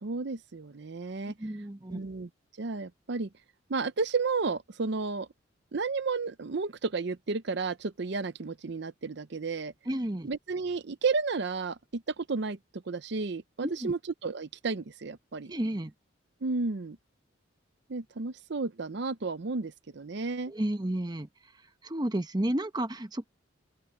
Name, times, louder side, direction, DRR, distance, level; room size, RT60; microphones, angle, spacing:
voice 1, 0.0-1.3 1.9-2.3 2.6-3.3 3.7-5.3 5.7-9.7 10.2-12.6 12.9-15.5 16.4-17.0 17.9-20.5, right 4 dB, 60° right, 0.6 m, -32 dB
voice 2, 1.4-2.0 9.9-10.3 13.6-13.9 15.5-15.9 20.5-21.3 21.8-23.3, right 1 dB, 20° right, 1.0 m, -31 dB
open air
head